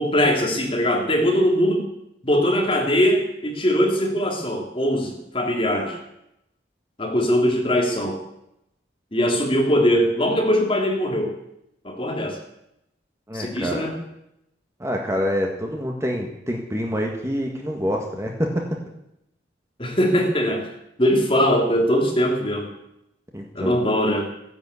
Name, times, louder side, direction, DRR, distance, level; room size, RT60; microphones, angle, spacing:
voice 1, 0.0-1.9 2.2-6.0 7.0-8.2 9.1-11.3 11.8-12.4 13.3-14.0 19.8-20.7 21.0-22.7 23.5-24.3, equal, 30° left, 1 dB, 3.1 m, -21 dB
voice 2, 13.3-13.9 14.8-18.6 23.3-23.8, equal, 15° right, 1 dB, 1.7 m, -26 dB
15.0 x 11.0 x 8.4 m, 0.83 s
head